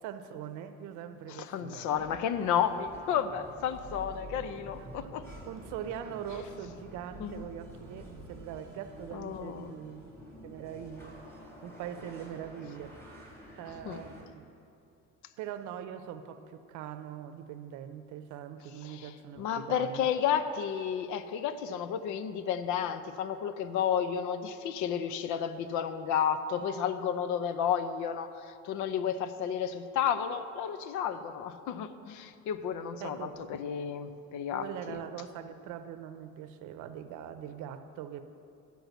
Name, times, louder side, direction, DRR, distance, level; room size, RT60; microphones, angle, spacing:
voice 1, 0.0-2.2 4.8-4.9 5.5-10.2 10.4-11.1 11.4-13.2 13.5-14.5 15.4-20.1 33.0-33.4 34.6-38.2, right 9 dB, 80° right, 10 dB, 0.7 m, -42 dB
voice 2, 1.3-5.3 7.2-7.4 9.1-9.8 13.9-14.0 18.8-35.0, left 8 dB, 80° left, 12 dB, 0.6 m, -32 dB
sound 1, 2.0-14.2, equal, 10° left, 1.7 m, -49 dB
10.5 x 4.6 x 8.1 m, 2.6 s
cardioid pair, 155°, 30 cm